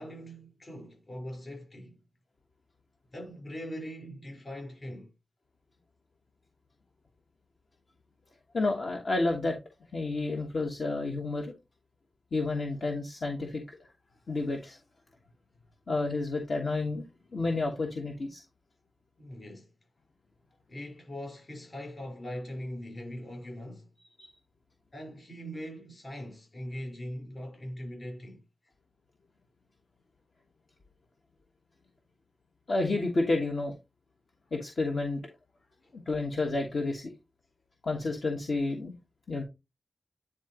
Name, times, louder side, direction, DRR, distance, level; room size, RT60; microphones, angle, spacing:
voice 1, 0.0-2.0 3.1-5.1 19.2-19.7 20.7-23.9 24.9-28.4 35.8-35.9, equal, 35° left, 4.6 m, -41 dB
voice 2, 8.5-9.6 9.9-11.5 12.3-13.8 14.3-14.8 15.9-17.0 17.3-18.4 24.2-24.3 32.7-33.7 34.5-35.2 36.1-37.1 37.8-38.9 39.3-39.4, left 2 dB, 60° left, 1.4 m, -30 dB
10.0 x 3.9 x 3.0 m
cardioid pair, 70°, 0 cm